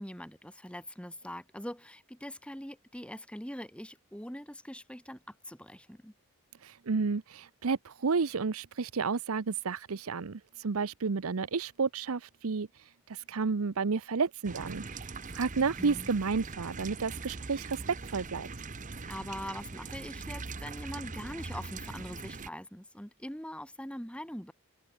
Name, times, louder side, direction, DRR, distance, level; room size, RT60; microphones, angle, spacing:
voice 1, 0.0-6.1 15.8-16.1 19.1-24.5, equal, 5° left, 4.8 m, -42 dB
voice 2, 6.6-12.7 13.1-18.5, right 4 dB, 75° right, 0.7 m, -31 dB
sound 1, 14.4-22.5, right 4 dB, 35° right, 1.0 m, -42 dB
head